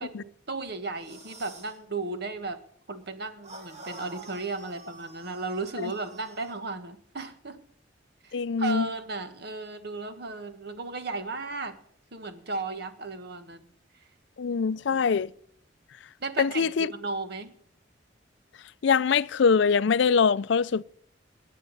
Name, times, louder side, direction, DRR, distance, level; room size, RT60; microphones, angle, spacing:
voice 1, 0.0-2.6 2.9-7.6 8.2-11.8 12.1-13.7 14.9-15.0 16.2-17.5, right 3 dB, 60° right, 1.4 m, -35 dB
sound 1, 0.9-1.8 3.4-6.6, right 2 dB, 35° right, 2.0 m, -47 dB
voice 2, 8.3-8.8 14.4-15.3 16.4-16.9 18.8-20.8, left 6 dB, 65° left, 0.4 m, -23 dB
18.5 x 10.0 x 4.0 m
head